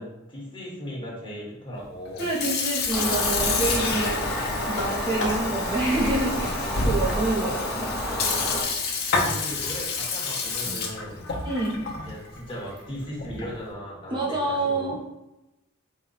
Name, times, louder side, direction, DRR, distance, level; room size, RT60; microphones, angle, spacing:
voice 1, 0.0-2.3 7.4-7.8 9.2-11.2 12.0-15.1, equal, 25° left, -5 dB, 1.2 m, -37 dB
Sink (filling or washing) / Fill (with liquid), 2.1-13.6, left 4 dB, 50° left, 0.7 m, -30 dB
voice 2, 2.2-4.2 4.7-7.9 11.4-11.9 14.1-15.0, right 2 dB, 25° right, -5 dB, 0.6 m, -27 dB
sound 1, 2.7-7.5 8.5-8.6, left 1 dB, 80° left, 0.8 m, -32 dB
sound 2, 2.9-8.6, equal, ahead, 1.0 m, -30 dB
4.2 x 2.2 x 4.0 m, 0.97 s
head